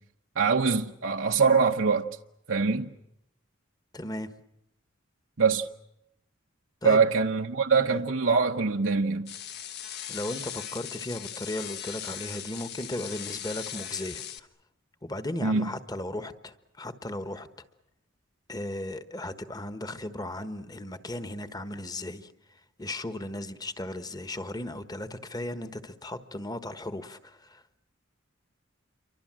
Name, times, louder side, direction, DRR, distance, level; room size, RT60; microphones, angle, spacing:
voice 1, 0.4-2.1 2.5-2.9 5.4-5.7 6.8-9.3 15.4-15.7, right 5 dB, 65° right, 1.0 m, -23 dB
voice 2, 3.9-4.3 6.8-7.0 7.8-8.0 10.1-14.2 15.0-17.5 18.5-22.3 22.8-27.6, left 1 dB, 20° left, 1.3 m, -36 dB
sound 1, 9.3-14.4, left 9 dB, 55° left, 1.4 m, -39 dB
29.0 x 24.5 x 7.7 m
head